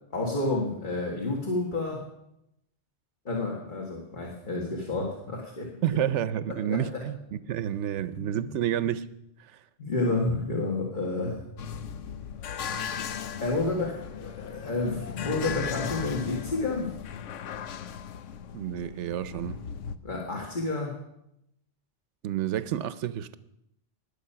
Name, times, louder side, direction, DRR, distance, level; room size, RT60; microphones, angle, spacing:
voice 1, 0.1-2.0 3.3-5.7 6.7-6.8 8.1-8.4 9.8-11.5 13.4-16.9 20.0-20.9, left 2 dB, 40° left, -2 dB, 2.0 m, -30 dB
voice 2, 5.8-7.2 7.5-9.1 9.4-9.6 18.5-19.6 22.2-23.4, right 10 dB, 75° right, 15 dB, 1.0 m, -29 dB
sound 1, 11.6-20.0, left 8 dB, 85° left, 1.1 m, -37 dB
20.0 x 7.1 x 5.7 m, 0.82 s
omnidirectional pair, 1.2 m